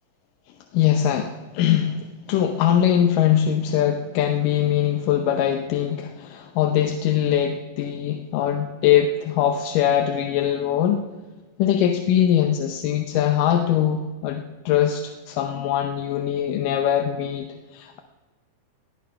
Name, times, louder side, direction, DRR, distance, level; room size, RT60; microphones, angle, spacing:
voice 1, 0.7-11.0 11.6-17.5 17.7-18.0, left 10 dB, 80° left, 5 dB, 2.4 m, -22 dB
19.0 x 10.0 x 5.8 m, 1.3 s
omnidirectional pair, 3.9 m